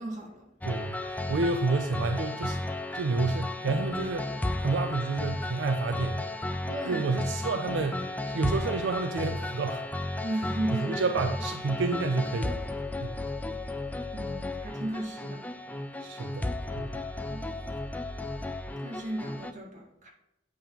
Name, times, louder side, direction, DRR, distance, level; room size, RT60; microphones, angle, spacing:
voice 1, 0.0-0.5 6.6-7.1 7.5-7.6 10.2-11.1 13.4-13.7 14.1-15.4 17.3-17.7 18.8-20.1, right 1 dB, 45° right, 1.7 m, -35 dB
sound 1, 0.6-19.5, left 2 dB, 10° left, 0.3 m, -34 dB
voice 2, 0.6-2.6 2.9-6.3 6.9-8.1 8.3-9.8 10.3-10.4 10.7-13.3 16.0-16.5 16.7-17.0, right 3 dB, 80° right, 0.4 m, -30 dB
8.6 x 5.4 x 3.0 m
head